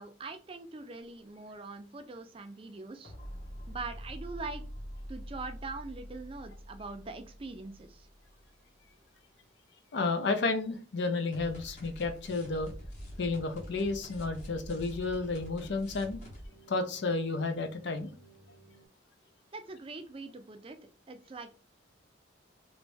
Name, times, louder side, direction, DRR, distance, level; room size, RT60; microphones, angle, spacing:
voice 1, 0.0-3.1 3.7-4.6 5.1-8.1 19.5-20.8 21.1-21.6, right 3 dB, 30° right, 0.4 m, -42 dB
sound 1, 1.1-1.3 3.0-8.9 11.3-18.9, equal, 40° left, 1.0 m, -46 dB
voice 2, 9.9-12.7 13.2-16.2 16.7-18.1, left 3 dB, 65° left, 0.5 m, -31 dB
3.1 x 2.6 x 3.3 m
head